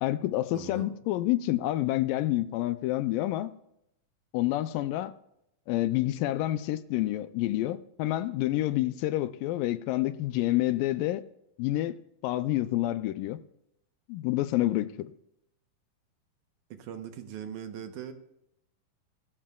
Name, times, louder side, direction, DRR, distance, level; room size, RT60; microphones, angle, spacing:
voice 1, 0.0-3.5 4.3-5.2 5.7-11.2 11.6-12.0 12.2-13.4 14.1-15.1, left 15 dB, 80° left, 2.1 m, -28 dB
voice 2, 0.5-0.9 16.7-18.1, right 9 dB, 70° right, 2.1 m, -40 dB
19.0 x 15.0 x 2.3 m
omnidirectional pair, 4.2 m